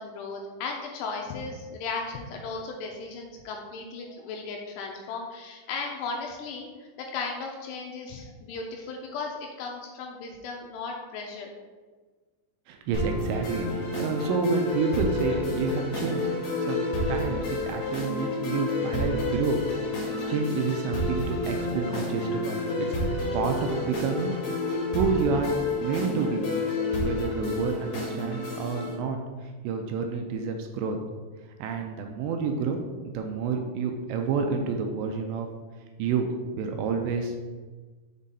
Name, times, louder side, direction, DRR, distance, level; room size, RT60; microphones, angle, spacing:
voice 1, 0.0-11.5, left 4 dB, 80° left, 1 dB, 2.6 m, -36 dB
voice 2, 12.7-13.7 14.0-16.3 16.6-19.6 19.9-24.4 24.9-25.5 25.8-26.5 27.0-29.2 29.6-31.0 31.6-35.5 36.0-37.5, right 5 dB, 85° right, 4 dB, 2.7 m, -29 dB
sound 1, 12.9-28.9, left 2 dB, 65° left, 1.8 m, -30 dB
7.2 x 3.8 x 4.1 m, 1.4 s
omnidirectional pair, 5.3 m